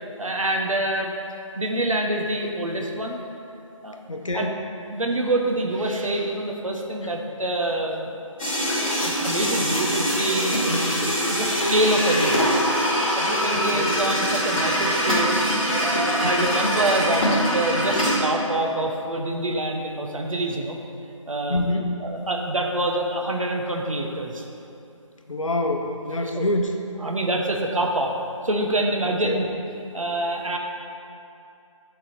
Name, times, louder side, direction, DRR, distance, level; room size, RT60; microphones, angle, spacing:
voice 1, 0.2-1.1 1.5-3.2 3.8-4.0 4.3-4.5 4.9-8.2 8.8-10.6 11.0-12.6 13.2-15.4 15.8-20.8 21.3-21.6 22.0-24.4 26.2-26.5 27.0-28.1 28.4-29.5 29.9-30.6, right 1 dB, 75° right, 1 dB, 1.1 m, -26 dB
voice 2, 4.1-4.6 10.7-10.9 13.5-13.9 16.2-16.3 21.5-22.0 25.3-26.7 29.0-29.4, left 1 dB, 70° left, 3 dB, 0.9 m, -26 dB
sound 1, 8.4-18.2, equal, 15° left, 1.9 m, -23 dB
10.5 x 4.0 x 4.5 m, 2.7 s
figure-of-eight pair, 170°, 17 cm